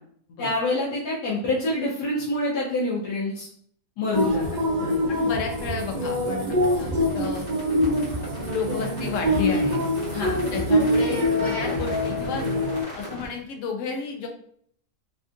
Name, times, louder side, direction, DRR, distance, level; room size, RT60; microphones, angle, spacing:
voice 1, 0.4-3.5 4.0-4.9 10.1-10.3, left 2 dB, 85° left, -6 dB, 1.4 m, -26 dB
sound 1, 4.1-12.8, equal, 75° right, 0.4 m, -24 dB
voice 2, 5.1-7.5 8.5-9.9 10.5-12.5 12.9-14.3, left 5 dB, 70° left, 3 dB, 0.8 m, -32 dB
sound 2, 6.8-13.3, left 1 dB, 35° left, 1.5 m, -39 dB
3.5 x 2.5 x 2.5 m, 0.62 s
omnidirectional pair, 1.7 m